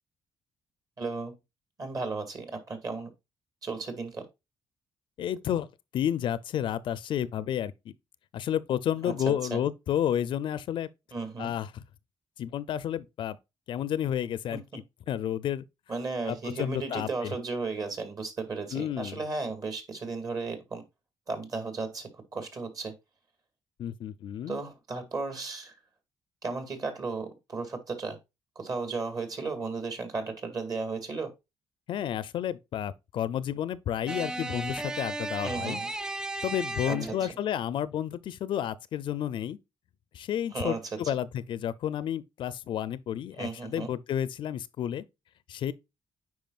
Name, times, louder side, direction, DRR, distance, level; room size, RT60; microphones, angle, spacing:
voice 1, 1.0-1.4 1.8-3.1 3.6-4.3 9.0-9.6 11.1-11.5 14.5-14.6 15.9-20.8 21.3-22.9 24.5-25.7 26.4-28.2 28.6-31.3 35.4-35.9 36.9-37.3 40.5-40.8 43.4-43.9, right 3 dB, 45° right, 2.3 m, -35 dB
voice 2, 5.2-5.7 5.9-7.9 8.3-10.9 11.4-11.8 12.4-13.4 13.7-14.6 15.1-15.6 16.3-17.3 18.7-19.2 23.8-24.6 31.9-35.8 36.4-39.6 40.1-45.0 45.5-45.7, left 10 dB, 65° left, 0.5 m, -31 dB
sound 1, 34.1-37.3, right 2 dB, 10° right, 0.4 m, -35 dB
9.3 x 4.8 x 2.4 m
cardioid pair, 105°, 9 cm